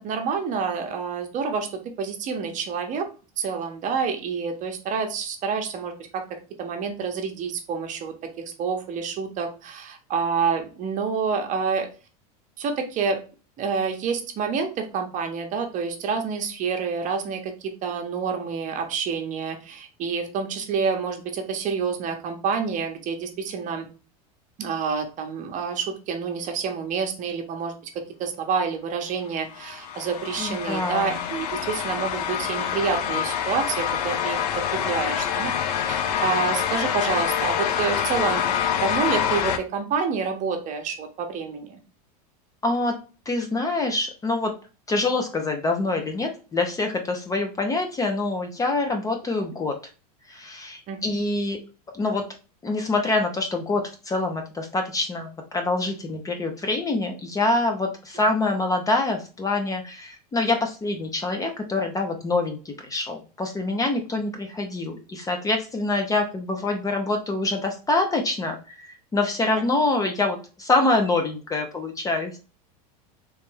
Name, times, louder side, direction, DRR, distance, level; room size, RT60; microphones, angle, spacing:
voice 1, 0.0-3.1 3.4-6.2 6.6-8.1 8.6-11.9 12.6-13.2 13.6-23.9 24.6-27.7 28.2-34.4 34.7-35.5 35.9-41.8 50.9-51.2 69.6-69.7, right 5 dB, 40° right, 5 dB, 0.9 m, -28 dB
sound 1, 29.5-39.6, left 9 dB, 85° left, 0.6 m, -26 dB
voice 2, 30.4-31.3 42.6-42.9 43.3-44.5 44.9-49.8 50.3-51.6 51.9-52.3 52.6-72.4, left 2 dB, 15° left, 4 dB, 0.6 m, -25 dB
3.3 x 3.1 x 3.2 m, 0.34 s
supercardioid pair, 120°, 20 cm